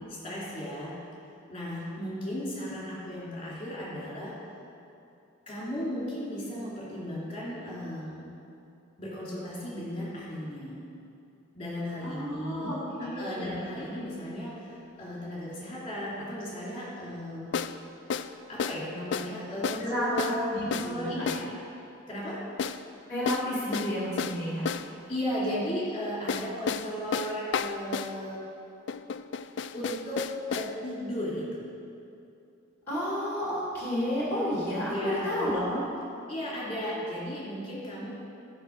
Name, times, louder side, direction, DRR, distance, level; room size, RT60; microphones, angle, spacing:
voice 1, 0.1-1.0 1.5-4.3 5.5-8.3 9.0-10.8 11.5-14.7 15.0-17.5 18.5-21.3 22.1-22.4 25.1-28.4 29.7-31.6 34.9-35.5 36.3-38.1, equal, 25° left, -7 dB, 2.7 m, -35 dB
voice 2, 12.0-13.6 19.8-20.1 20.5-21.5 23.1-24.7 32.9-35.8, equal, 10° left, -7 dB, 2.3 m, -31 dB
sound 1, 13.6-13.7 17.5-17.8 18.1-18.3 18.6-18.8 19.1-19.3 19.6-19.9 20.2-20.4 20.7-20.9 21.3-21.5 22.6-22.8 23.3-24.9 26.3-28.1 28.9-30.7, left 6 dB, 60° left, 0.3 m, -32 dB
12.5 x 5.3 x 6.4 m, 2.6 s
head